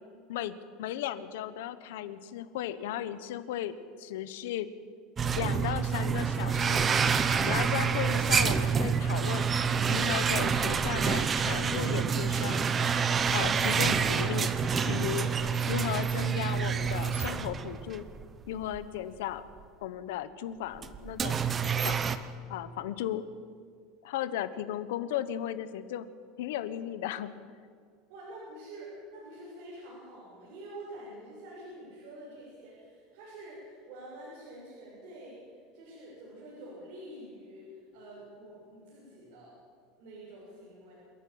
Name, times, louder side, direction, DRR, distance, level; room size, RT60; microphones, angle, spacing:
voice 1, 0.3-4.7 5.3-6.9 7.5-9.5 9.9-12.6 13.3-14.5 14.9-15.3 15.7-18.0 18.5-19.4 19.8-21.5 21.8-22.0 22.5-23.2 24.0-26.1 26.4-27.3, left 11 dB, 90° left, 13 dB, 1.2 m, -35 dB
sound 1, 5.2-18.2 18.6-18.8 19.6-19.7 20.8-22.2, right 6 dB, 20° right, 0.8 m, -27 dB
voice 2, 28.1-39.5 40.0-41.0, right 1 dB, 55° right, -6 dB, 6.8 m, -47 dB
27.5 x 11.5 x 8.9 m, 2.1 s
cardioid pair, 170°, 0 cm